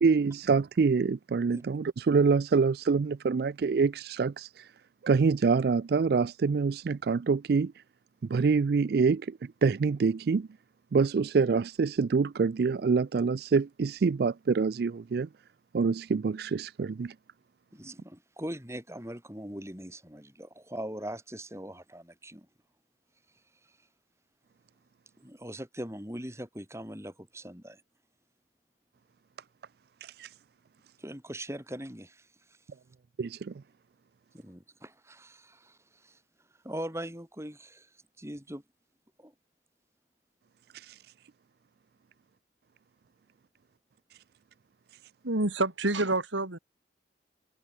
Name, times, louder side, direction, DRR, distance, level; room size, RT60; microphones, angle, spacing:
voice 1, 0.0-4.7 5.0-7.8 8.2-10.5 10.9-15.3 15.7-17.1 30.0-30.3 33.2-33.6 40.7-41.1 44.1-44.2 44.9-45.0, right 5 dB, 55° right, 0.4 m, -26 dB
voice 2, 17.7-22.5 25.2-27.8 31.0-32.3 34.3-36.2 36.6-37.9 38.2-38.6 39.2-39.3, right 1 dB, 15° right, 5.7 m, -41 dB
voice 3, 45.2-46.6, right 2 dB, 90° right, 3.0 m, -27 dB
head